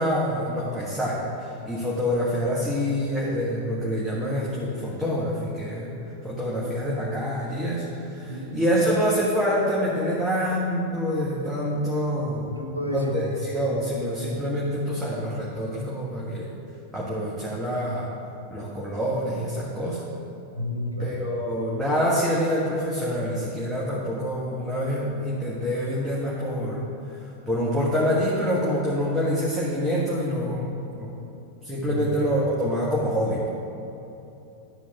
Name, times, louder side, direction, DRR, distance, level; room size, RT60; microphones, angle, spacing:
voice 1, 0.0-6.0 6.2-12.6 12.9-16.5 16.9-18.1 18.5-20.0 21.0-26.8 27.2-31.1 31.6-33.4, equal, 5° right, -7 dB, 1.5 m, -26 dB
voice 2, 8.3-8.9 12.6-13.2 20.5-21.2 31.8-32.0, equal, 85° right, 3 dB, 0.9 m, -31 dB
11.5 x 4.5 x 6.0 m, 2.9 s
figure-of-eight pair, 90°, 0 cm